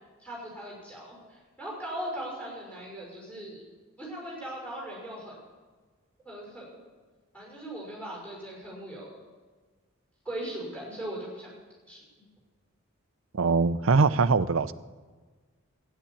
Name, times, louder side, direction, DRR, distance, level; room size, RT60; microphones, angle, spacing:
voice 1, 0.2-3.6 4.0-5.4 6.2-6.8 7.3-9.2 10.2-11.5 11.8-12.0, right 1 dB, 5° left, 5.8 m, -39 dB
voice 2, 13.3-14.7, right 4 dB, 70° right, 0.6 m, -22 dB
13.0 x 10.0 x 8.6 m
head